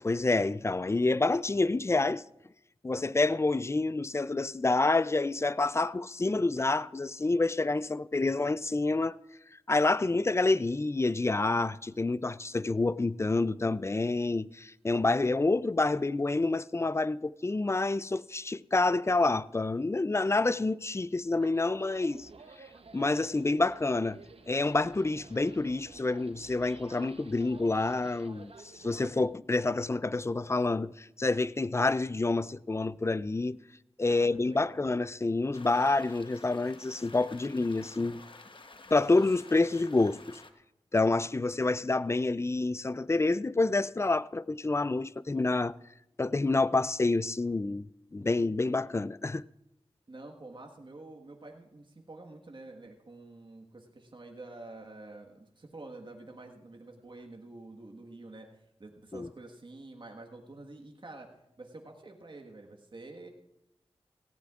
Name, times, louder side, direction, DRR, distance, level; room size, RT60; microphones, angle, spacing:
voice 1, 0.0-2.2 2.8-9.2 9.7-22.3 22.9-24.2 24.5-33.6 34.0-38.2 38.9-40.4 40.9-45.7 46.2-47.8 48.1-49.4 59.1-59.3, left 3 dB, 25° left, 0.3 m, -28 dB
sound 1, 21.4-29.3, right 4 dB, 70° right, 0.8 m, -52 dB
voice 2, 34.1-34.8 50.1-61.3 61.6-63.3, right 2 dB, 50° right, 1.5 m, -48 dB
sound 2, 35.5-40.5, left 3 dB, 55° left, 1.0 m, -51 dB
17.5 x 15.0 x 2.4 m
cardioid pair, 45°, 10 cm